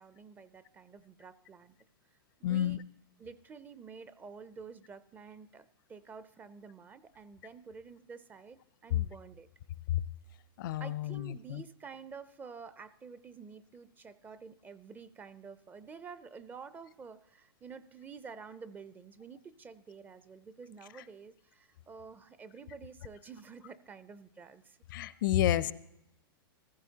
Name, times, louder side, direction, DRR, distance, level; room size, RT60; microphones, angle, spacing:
voice 1, 0.0-1.7 2.4-2.8 3.2-9.5 10.8-24.8, right 5 dB, 15° right, 15 dB, 0.4 m, -49 dB
voice 2, 2.4-2.8 9.9-10.0 10.6-11.6 24.9-25.7, left 12 dB, 60° left, 18 dB, 0.5 m, -30 dB
15.0 x 15.0 x 2.8 m, 0.83 s
hypercardioid pair, 135°, 12 cm